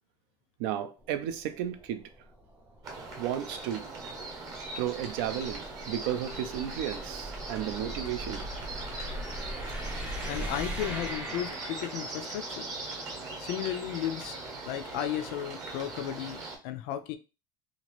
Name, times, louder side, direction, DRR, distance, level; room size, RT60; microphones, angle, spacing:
voice 1, 0.6-2.0 3.2-3.9 4.8-8.4, right 10 dB, 60° right, 0.5 m, -33 dB
sound 1, 1.0-12.4, right 1 dB, 10° right, 0.5 m, -41 dB
sound 2, 2.8-16.6, right 3 dB, 25° right, 0.9 m, -40 dB
voice 2, 10.3-12.7 13.4-14.4 14.7-17.2, left 11 dB, 55° left, 0.4 m, -34 dB
2.9 x 2.4 x 3.0 m
cardioid pair, 175°, 12 cm